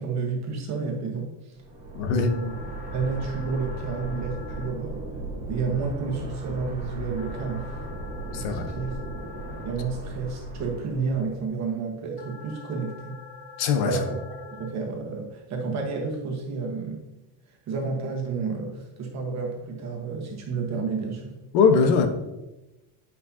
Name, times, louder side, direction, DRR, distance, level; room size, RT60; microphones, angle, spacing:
voice 1, 0.0-1.6 2.1-2.6 2.9-5.0 5.5-7.7 8.3-9.0 9.6-13.2 13.8-17.0 17.5-21.4, right 4 dB, 35° right, 0 dB, 1.3 m, -31 dB
sound 1, 1.6-11.4, right 2 dB, 15° right, 1.4 m, -36 dB
voice 2, 1.9-2.3 8.3-8.7 13.6-14.0 21.5-22.1, left 5 dB, 85° left, 7 dB, 1.2 m, -21 dB
sound 2, 2.2-4.7 7.2-9.7 12.2-14.7, left 5 dB, 60° left, 1.3 m, -45 dB
10.0 x 5.4 x 2.8 m, 1.0 s
cardioid pair, 160°, 48 cm